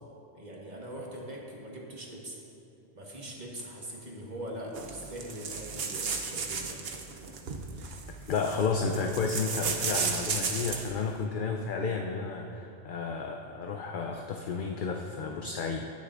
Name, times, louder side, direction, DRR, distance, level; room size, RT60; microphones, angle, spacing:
voice 1, 0.3-2.4 2.9-7.0, right 1 dB, 40° right, -3 dB, 1.4 m, -42 dB
sound 1, 4.7-11.0, right 5 dB, 60° right, 0.9 m, -34 dB
voice 2, 8.3-15.9, left 4 dB, 55° left, 3 dB, 0.6 m, -32 dB
18.5 x 6.6 x 2.5 m, 2.9 s
omnidirectional pair, 1.2 m